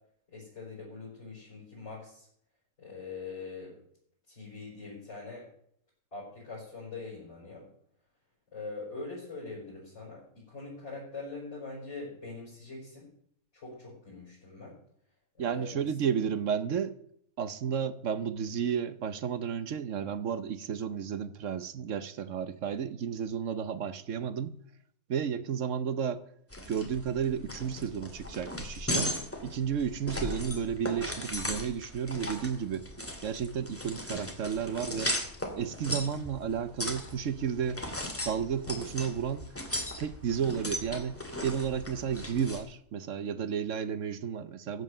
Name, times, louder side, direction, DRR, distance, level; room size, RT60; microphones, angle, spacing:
voice 1, 0.3-2.3 2.8-3.8 4.3-5.5 6.1-7.7 8.5-13.1 13.5-14.8 15.3-15.9, left 3 dB, 50° left, 6.0 m, -43 dB
voice 2, 15.4-17.0 17.4-24.6 25.1-26.2 26.7-29.1 29.4-32.8 33.2-35.1 35.5-37.8 38.2-39.4 40.0-44.8, right 7 dB, 60° right, 1.1 m, -32 dB
sound 1, 26.5-42.6, left 1 dB, 10° left, 2.0 m, -37 dB
14.5 x 8.2 x 6.6 m
omnidirectional pair, 1.6 m